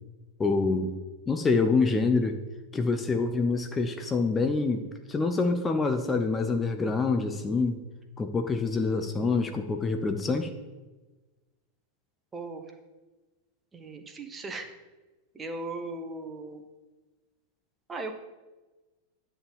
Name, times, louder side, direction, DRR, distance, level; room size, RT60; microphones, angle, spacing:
voice 1, 0.4-0.9 1.3-2.4 2.7-7.8 8.2-10.5, left 4 dB, 15° left, 6 dB, 0.7 m, -26 dB
voice 2, 12.3-12.7 13.7-14.7 15.3-16.6 17.9-18.1, right 2 dB, 20° right, 6 dB, 1.0 m, -37 dB
10.0 x 3.7 x 7.1 m, 1.2 s
figure-of-eight pair, 90°, 0 cm